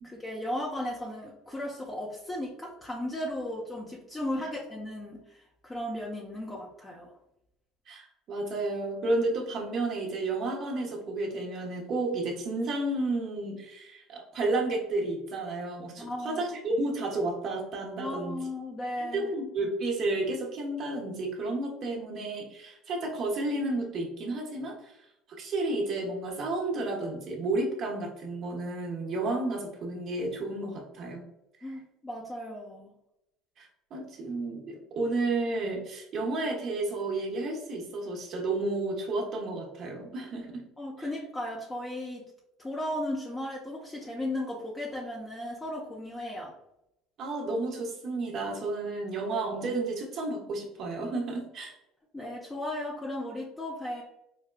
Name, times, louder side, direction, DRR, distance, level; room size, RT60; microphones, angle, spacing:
voice 1, 0.0-7.1 16.0-16.4 18.0-19.3 31.6-32.9 40.8-42.2 42.6-46.5 52.1-54.0, left 1 dB, 15° left, -3 dB, 0.8 m, -36 dB
voice 2, 7.9-18.4 19.0-24.9 25.4-31.2 33.6-40.6 47.2-51.7, right 2 dB, 50° right, 0 dB, 1.1 m, -32 dB
5.0 x 2.2 x 2.2 m, 0.83 s
hypercardioid pair, 80°, 0 cm